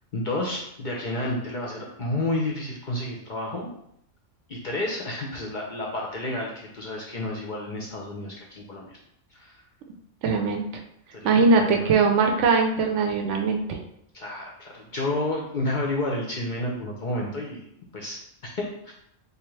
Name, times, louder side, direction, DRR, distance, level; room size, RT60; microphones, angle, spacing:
voice 1, 0.1-3.7 4.5-9.0 9.3-9.6 11.1-11.9 14.1-17.6 17.9-18.9, left 1 dB, 50° left, -2 dB, 0.6 m, -31 dB
voice 2, 10.2-10.7 11.2-13.8, right 4 dB, 70° right, 3 dB, 0.9 m, -21 dB
3.7 x 2.8 x 3.1 m, 0.73 s
omnidirectional pair, 1.3 m